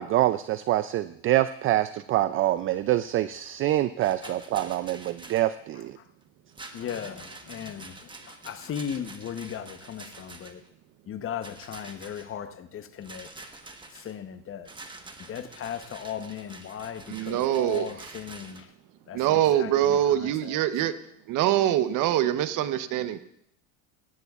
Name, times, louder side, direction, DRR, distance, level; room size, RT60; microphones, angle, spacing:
voice 1, 0.0-6.0, right 14 dB, 35° right, 0.4 m, -25 dB
Rattle, 4.0-5.5 6.5-10.7 11.4-12.3 13.0-14.1 14.7-18.6, right 2 dB, 10° right, 1.2 m, -46 dB
voice 2, 6.7-10.6 11.1-13.3 13.9-14.7 15.3-18.7 19.1-20.6, left 9 dB, 35° left, 0.9 m, -37 dB
voice 3, 17.1-18.1 19.1-20.9 21.3-23.2, right 12 dB, 55° right, 0.9 m, -24 dB
17.0 x 15.5 x 2.4 m
supercardioid pair, 100°, 38 cm